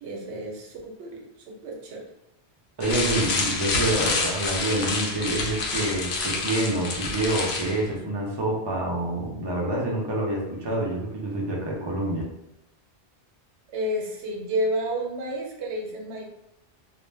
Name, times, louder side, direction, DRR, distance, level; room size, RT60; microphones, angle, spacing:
voice 1, 0.0-2.0 13.7-16.2, equal, 90° right, 0 dB, 1.0 m, -31 dB
sound 1, 2.8-7.8, left 3 dB, 75° left, 0.8 m, -28 dB
voice 2, 2.8-12.2, right 1 dB, 30° right, -2 dB, 0.5 m, -27 dB
2.5 x 2.1 x 3.2 m, 0.86 s
omnidirectional pair, 1.1 m